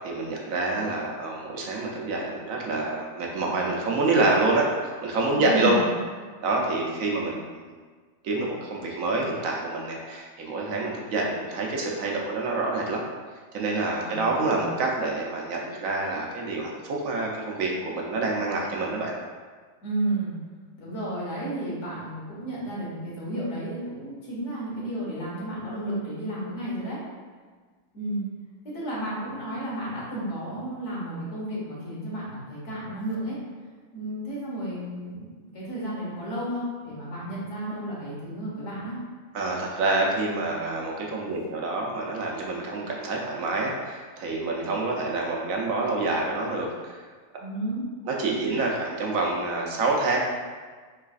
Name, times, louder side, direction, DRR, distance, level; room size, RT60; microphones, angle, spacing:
voice 1, 0.0-5.7 6.4-7.6 8.2-13.0 13.5-19.1 39.3-47.0 48.1-50.2, right 2 dB, 70° right, -1 dB, 0.9 m, -27 dB
voice 2, 5.4-5.9 14.0-14.7 19.8-20.4 20.8-27.0 27.9-28.2 28.6-33.4 33.9-39.0 47.4-47.8, right 1 dB, 55° left, -6 dB, 1.4 m, -32 dB
4.6 x 3.2 x 2.4 m, 1.5 s
omnidirectional pair, 1.6 m